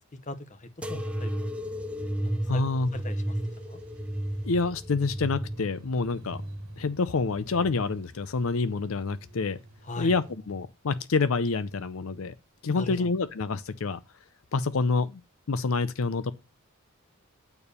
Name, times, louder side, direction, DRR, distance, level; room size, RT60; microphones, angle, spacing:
voice 1, 0.2-1.3 1.6-1.8 2.2-2.6 2.9-3.4 3.7-3.8 9.8-10.1 12.7-13.1, left 2 dB, 35° left, 1.0 m, -39 dB
sound 1, 0.8-8.0 8.6-9.3 10.1-10.6 11.6-11.7, equal, 5° right, 0.7 m, -34 dB
sound 2, 1.6-10.4, equal, 85° right, 1.5 m, -54 dB
voice 2, 2.5-2.9 4.4-6.4 6.8-9.6 10.0-12.3 12.6-14.0 14.5-15.2 15.5-16.3, left 4 dB, 70° left, 0.6 m, -27 dB
8.7 x 4.6 x 6.7 m
head